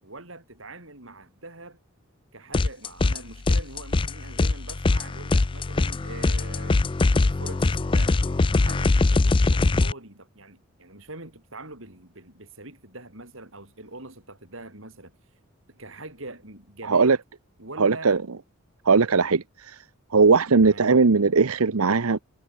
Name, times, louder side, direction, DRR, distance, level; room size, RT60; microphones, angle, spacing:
voice 1, 0.0-1.8 2.3-6.9 7.2-15.1 15.7-17.2 17.6-18.2 20.6-21.0, right 2 dB, 65° right, 7.9 m, -43 dB
sound 1, 2.5-3.2 3.5-9.9, left 3 dB, 25° left, 0.4 m, -22 dB
voice 2, 17.8-18.2 18.9-19.8 20.1-22.2, right 4 dB, 90° right, 0.9 m, -19 dB
head